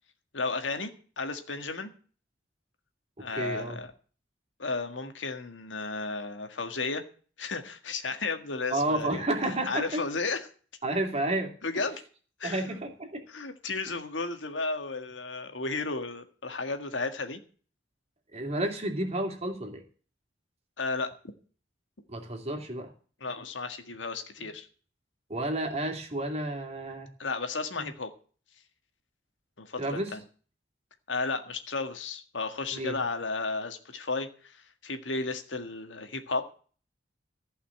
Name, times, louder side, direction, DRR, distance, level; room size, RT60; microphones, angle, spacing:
voice 1, 0.3-0.9 1.2-1.9 3.2-3.9 4.6-7.0 7.4-9.2 9.7-10.5 11.6-12.0 12.4-12.8 13.3-17.4 20.8-21.1 23.2-24.7 27.2-28.1 29.6-30.2 31.1-36.5, left 3 dB, 85° left, 7 dB, 1.8 m, -33 dB
voice 2, 3.2-3.8 8.7-10.0 10.8-11.5 12.4-13.2 18.3-19.8 22.1-22.9 25.3-27.1 27.8-27.9 29.8-30.1 32.7-33.0, right 1 dB, 35° right, 3 dB, 2.7 m, -31 dB
15.0 x 5.7 x 8.6 m, 0.41 s
head